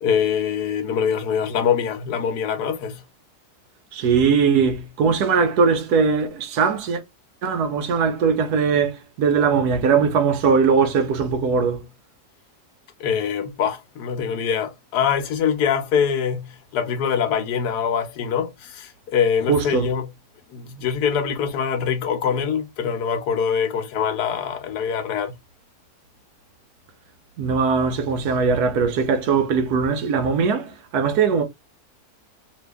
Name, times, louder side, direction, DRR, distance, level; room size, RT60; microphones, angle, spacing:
voice 1, 0.0-3.0 13.0-20.1 20.5-25.3, left 7 dB, 80° left, 1.2 m, -24 dB
voice 2, 3.9-7.0 7.4-11.8 19.5-19.9 27.4-31.4, right 5 dB, 75° right, 1.2 m, -20 dB
2.9 x 2.7 x 3.4 m
omnidirectional pair, 1.7 m